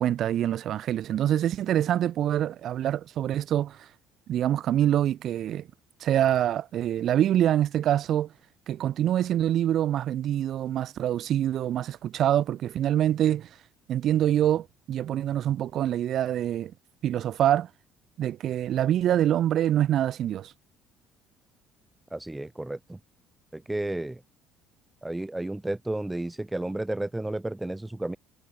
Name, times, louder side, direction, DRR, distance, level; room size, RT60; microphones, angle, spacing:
voice 1, 0.0-3.9 4.3-5.7 6.0-8.3 8.7-13.5 13.9-16.7 17.0-17.7 18.2-20.5, right 11 dB, 60° right, 5.1 m, -25 dB
voice 2, 22.1-23.0 23.5-24.2 25.0-28.2, right 1 dB, 10° right, 5.0 m, -32 dB
supercardioid pair, 85°, 0 cm